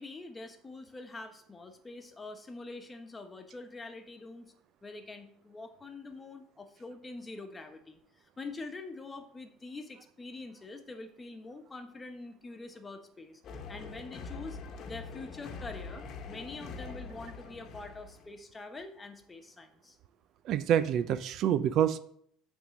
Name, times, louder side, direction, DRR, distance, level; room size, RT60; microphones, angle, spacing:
voice 1, 0.0-4.5 4.8-13.4 13.7-14.6 14.8-20.0, left 3 dB, 20° left, 7 dB, 1.1 m, -45 dB
sound 1, 13.4-18.3, left 5 dB, 55° left, 1.1 m, -44 dB
voice 2, 20.5-22.0, right 10 dB, 60° right, 14 dB, 0.5 m, -27 dB
8.7 x 3.7 x 6.2 m, 0.65 s
supercardioid pair, 85°, 0 cm